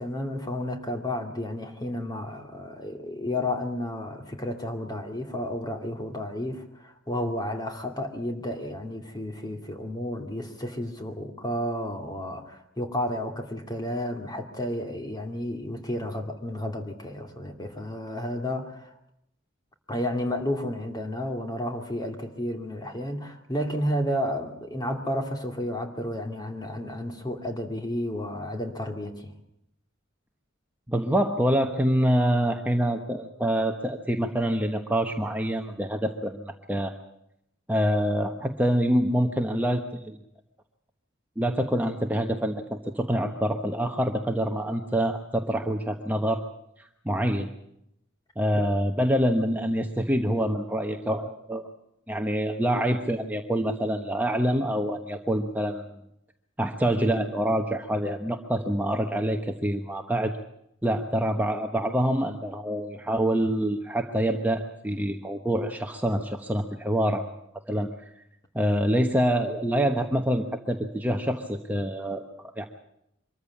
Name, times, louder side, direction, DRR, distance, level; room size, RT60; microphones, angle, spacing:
voice 1, 0.0-18.9 19.9-29.3, left 1 dB, 20° left, 4 dB, 2.4 m, -32 dB
voice 2, 30.9-36.9 37.7-40.2 41.4-46.4 46.8-47.5 48.4-51.7 52.1-55.9 56.6-60.3 60.8-67.3 67.7-67.9 68.5-72.2 72.6-72.7, equal, 10° right, 3 dB, 1.1 m, -26 dB
24.5 x 14.0 x 8.5 m, 0.79 s
head